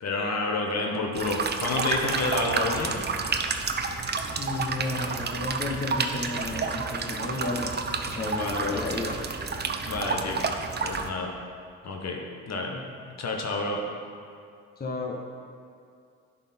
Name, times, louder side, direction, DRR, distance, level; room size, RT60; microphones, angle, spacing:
voice 1, 0.0-3.0 8.2-8.8 9.8-10.4 10.8-11.3 11.8-12.2 12.5-12.7 13.2-13.8, left 3 dB, 55° left, 0 dB, 1.2 m, -29 dB
sound 1, 1.2-11.1, right 4 dB, 30° right, 0.7 m, -30 dB
voice 2, 4.4-7.8 8.1-9.1 12.7-12.8 14.8-15.2, left 3 dB, 30° left, 0 dB, 1.0 m, -32 dB
10.5 x 4.2 x 4.3 m, 2.3 s
supercardioid pair, 65°, 31 cm